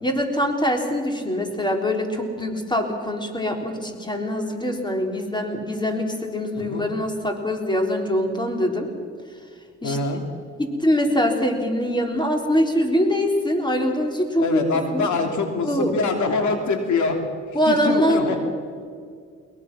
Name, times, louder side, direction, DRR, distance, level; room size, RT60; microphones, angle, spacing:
voice 1, 0.0-8.9 9.8-10.0 10.6-14.6 14.9-15.1 15.6-15.9 17.5-18.4, equal, 15° left, 3 dB, 3.8 m, -23 dB
voice 2, 9.8-10.2 14.4-17.2 17.7-18.4, left 4 dB, 70° left, 4 dB, 3.1 m, -24 dB
22.0 x 22.0 x 6.2 m, 2.1 s
cardioid pair, 90°, 30 cm